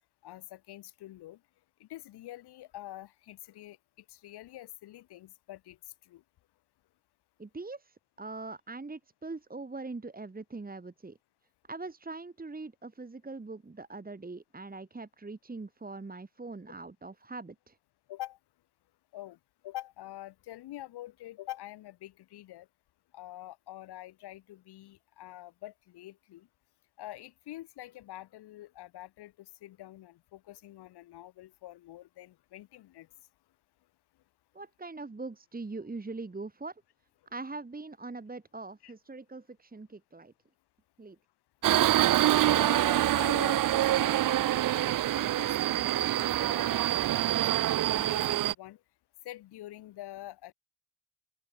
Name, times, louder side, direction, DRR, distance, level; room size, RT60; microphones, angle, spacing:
voice 1, 0.2-1.4 1.8-3.8 4.1-5.8 6.1-6.2 18.1-18.4 19.1-19.4 19.6-22.7 23.1-26.5 27.0-33.1 38.8-38.9 42.4-46.9 47.9-48.8 49.2-50.5, left 15 dB, 80° left, 1.5 m, -45 dB
voice 2, 7.4-11.2 11.7-17.8 34.5-36.8 37.3-40.3 41.0-41.2, right 3 dB, 25° right, 1.8 m, -42 dB
Subway metro underground, 41.6-48.5, right 14 dB, 55° right, 0.5 m, -26 dB
open air
supercardioid pair, 50°, 39 cm